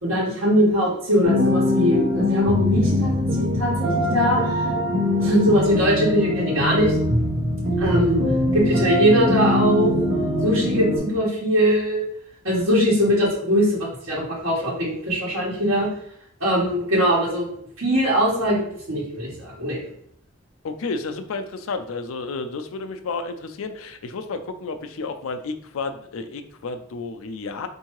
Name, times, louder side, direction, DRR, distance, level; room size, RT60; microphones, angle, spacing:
voice 1, 0.0-4.7 5.2-6.9 7.8-8.2 8.5-9.9 10.4-12.0 12.4-15.9 16.4-17.5 17.8-19.8, equal, 85° right, -7 dB, 1.2 m, -21 dB
sound 1, 1.2-11.0, left 1 dB, 65° right, 1.1 m, -22 dB
voice 2, 20.6-27.7, left 3 dB, 80° left, 8 dB, 0.4 m, -31 dB
4.5 x 2.7 x 3.0 m, 0.68 s
head